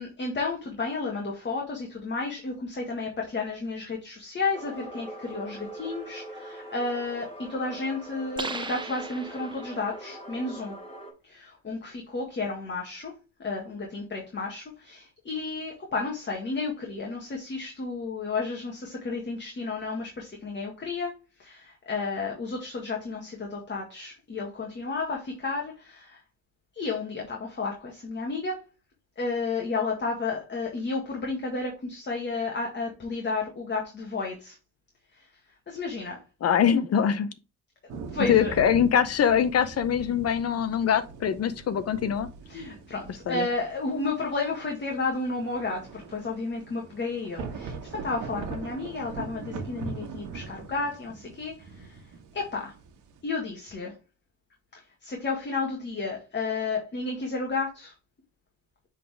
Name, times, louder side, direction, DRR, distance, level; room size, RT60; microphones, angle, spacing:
voice 1, 0.0-10.8 11.2-13.1 13.4-21.1 21.4-26.2 26.7-28.6 29.2-34.6 35.1-35.3 35.7-36.2 38.1-38.5 42.5-52.0 52.3-52.7 53.2-53.9 55.0-57.9, left 3 dB, 35° left, 1.9 m, -32 dB
sound 1, 4.5-11.1, right 1 dB, 20° left, 3.5 m, -42 dB
sound 2, 8.4-9.9, right 3 dB, 15° right, 0.7 m, -37 dB
voice 2, 36.4-37.3 38.3-42.3 43.3-43.5, left 8 dB, 55° left, 0.8 m, -23 dB
sound 3, 37.9-53.2, right 5 dB, 80° right, 1.6 m, -41 dB
7.4 x 4.0 x 3.5 m
cardioid pair, 90°, 30 cm